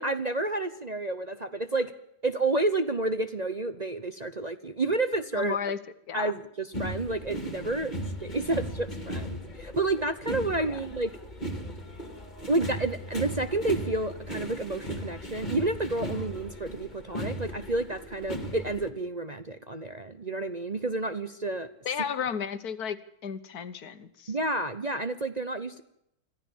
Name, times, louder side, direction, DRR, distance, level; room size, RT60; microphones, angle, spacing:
voice 1, 0.0-1.9 2.2-5.6 6.1-11.1 12.5-21.7 24.3-25.8, right 2 dB, 30° right, 9 dB, 0.9 m, -30 dB
voice 2, 5.4-5.8 6.1-6.3 10.7-10.8 21.8-23.0 23.2-24.3, left 7 dB, 70° left, 13 dB, 1.6 m, -33 dB
sound 1, 6.7-18.9, equal, 30° left, 2.5 m, -37 dB
25.5 x 14.5 x 7.2 m, 0.79 s
omnidirectional pair, 1.7 m